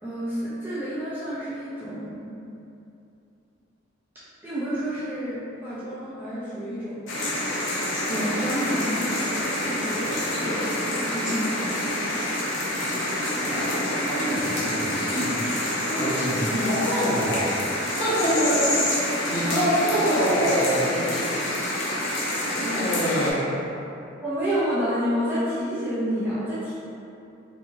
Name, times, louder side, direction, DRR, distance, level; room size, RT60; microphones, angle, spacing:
voice 1, 0.0-2.3 4.4-12.1 24.2-26.8, equal, 10° right, -12 dB, 0.4 m, -30 dB
sound 1, 7.1-23.3, left 1 dB, 70° left, 0.6 m, -27 dB
voice 2, 13.3-13.7 14.0-15.4 15.9-17.5 17.9-21.2 22.6-23.5, equal, 30° left, -14 dB, 1.3 m, -25 dB
2.8 x 2.5 x 2.6 m, 2.7 s
head